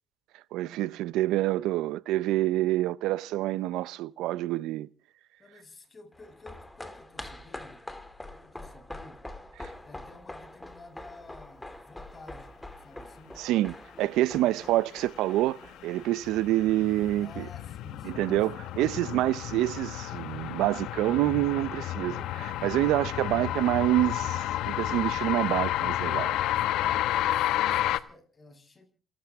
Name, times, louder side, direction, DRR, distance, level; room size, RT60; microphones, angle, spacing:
voice 1, 0.5-4.9 9.6-9.7 13.4-17.4 18.0-26.4, right 15 dB, 75° right, 0.8 m, -27 dB
voice 2, 5.4-7.9 8.2-9.3 9.8-13.5 14.4-14.8 17.2-19.4 26.3-28.9, left 3 dB, 25° left, 7.5 m, -52 dB
sound 1, 6.1-16.7 17.0-17.1, left 1 dB, 10° left, 2.9 m, -45 dB
sound 2, 15.2-28.0, left 13 dB, 75° left, 1.2 m, -31 dB
27.5 x 13.0 x 3.7 m
supercardioid pair, 90°, 0 cm